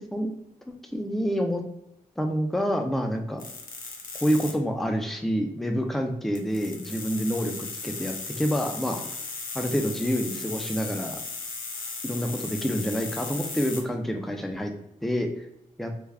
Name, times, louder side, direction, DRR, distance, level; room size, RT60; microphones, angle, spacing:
voice 1, 0.9-1.6 2.2-3.4 4.2-9.1 9.5-11.2 12.0-14.7 15.0-15.3 15.8-15.9, equal, ahead, 4 dB, 0.4 m, -27 dB
sound 1, 3.4-4.5 6.3-13.8, left 4 dB, 70° left, 0.7 m, -36 dB
3.4 x 2.2 x 3.3 m, 0.79 s
wide cardioid pair, 155°, 14 cm